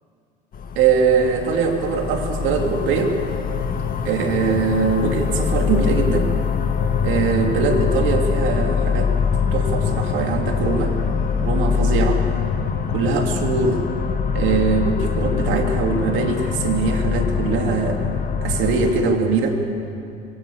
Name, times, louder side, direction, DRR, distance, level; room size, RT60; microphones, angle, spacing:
sound 1, 0.5-19.2, left 6 dB, 45° left, 1.6 m, -23 dB
voice 1, 0.8-3.1 4.0-6.3 7.0-9.1 9.5-10.9 11.4-12.2 12.9-13.8 14.3-18.0 18.4-19.6, right 5 dB, 65° right, 3 dB, 2.8 m, -21 dB
21.5 x 17.5 x 7.0 m, 2.6 s
hypercardioid pair, 75°, 21 cm